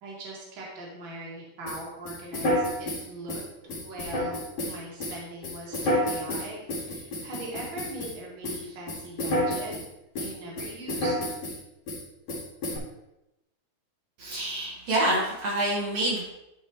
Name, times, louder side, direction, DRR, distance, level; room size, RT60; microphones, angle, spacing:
voice 1, 0.0-9.7 10.2-11.1, right 1 dB, 45° right, -4 dB, 2.5 m, -41 dB
sound 1, 1.7-8.2 8.4-9.9 10.2-11.6 11.9-12.0 12.3-12.8, left 1 dB, 55° left, 3.1 m, -30 dB
voice 2, 14.2-16.3, right 1 dB, 65° right, -5 dB, 2.7 m, -27 dB
12.0 x 5.2 x 3.1 m, 0.91 s
omnidirectional pair, 3.4 m